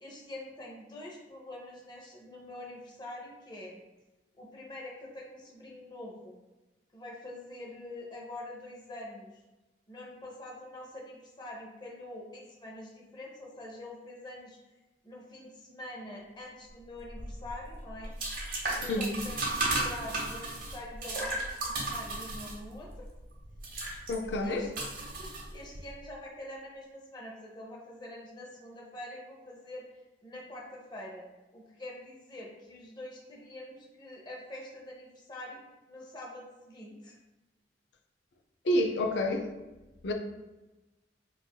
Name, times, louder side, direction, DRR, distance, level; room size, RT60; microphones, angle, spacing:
voice 1, 0.0-3.8 4.4-6.4 6.9-9.3 9.9-14.6 15.0-18.1 18.7-23.1 24.4-24.7 24.9-29.9 30.2-31.3 31.5-35.6 35.9-37.2, left 1 dB, 25° left, -2 dB, 0.7 m, -45 dB
sound 1, 17.0-25.9, right 2 dB, 55° right, 0.8 m, -35 dB
voice 2, 18.9-19.2 24.1-24.7 38.6-39.5 40.0-40.1, left 1 dB, 75° left, 4 dB, 0.4 m, -28 dB
4.5 x 2.4 x 2.3 m, 1.1 s
head